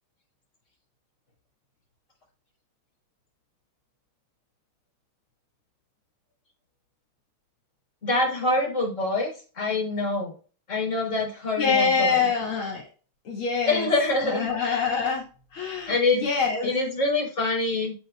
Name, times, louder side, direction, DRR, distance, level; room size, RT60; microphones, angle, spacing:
voice 1, 8.0-10.3 10.7-12.3 13.7-14.8 15.9-16.3 16.6-17.9, left 2 dB, 35° left, 0 dB, 4.5 m, -25 dB
voice 2, 11.6-12.9 13.2-13.9 14.2-15.3 15.5-16.7, left 5 dB, 70° left, -2 dB, 3.1 m, -25 dB
15.5 x 5.8 x 2.4 m, 0.37 s
omnidirectional pair, 2.4 m